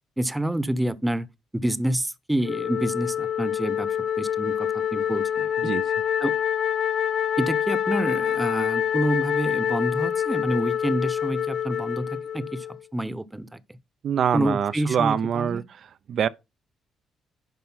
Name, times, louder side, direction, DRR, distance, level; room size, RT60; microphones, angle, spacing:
voice 1, 0.2-1.3 1.5-5.5 6.2-6.4 7.4-12.7 12.9-13.6 14.3-15.6, right 1 dB, 10° right, 1.0 m, -28 dB
Wind instrument woodwind instrument, 2.4-12.8, left 9 dB, 65° left, 1.1 m, -26 dB
voice 2, 14.0-15.6 16.1-16.3, right 8 dB, 60° right, 0.7 m, -24 dB
11.0 x 4.8 x 5.7 m
cardioid pair, 90°, 0 cm